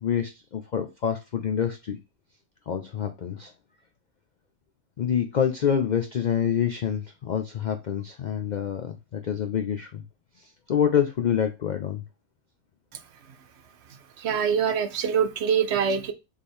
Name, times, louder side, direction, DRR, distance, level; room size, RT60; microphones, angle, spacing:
voice 1, 0.0-2.0 2.7-3.5 5.0-10.0 10.7-12.0, left 8 dB, 65° left, 7 dB, 0.4 m, -26 dB
voice 2, 14.2-16.1, right 7 dB, 65° right, 9 dB, 0.8 m, -24 dB
3.6 x 3.3 x 4.3 m, 0.27 s
omnidirectional pair, 1.3 m